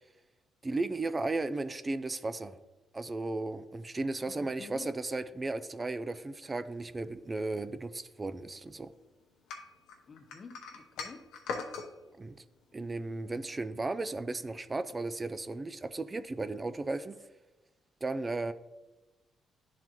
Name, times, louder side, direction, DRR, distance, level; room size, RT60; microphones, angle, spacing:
voice 1, 0.6-2.6 2.9-8.9 12.2-12.4 12.7-17.2 18.0-18.5, right 2 dB, 25° right, 12 dB, 0.3 m, -35 dB
voice 2, 4.2-4.9 10.1-11.3, left 4 dB, 45° left, 8 dB, 0.6 m, -49 dB
sound 1, 9.5-11.9, left 5 dB, 90° left, 0.8 m, -40 dB
10.5 x 3.9 x 2.9 m, 1.1 s
cardioid pair, 90°, 0 cm